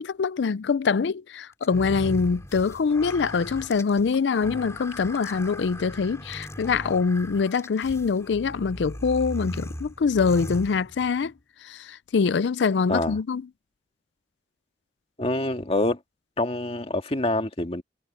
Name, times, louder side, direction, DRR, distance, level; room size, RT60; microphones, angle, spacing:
voice 1, 0.0-11.3 11.6-13.4, left 5 dB, 80° left, 0.4 m, -24 dB
sound 1, 1.6-11.3, left 1 dB, 15° left, 3.3 m, -38 dB
voice 2, 15.2-16.0 16.4-17.8, left 2 dB, 35° left, 1.9 m, -26 dB
head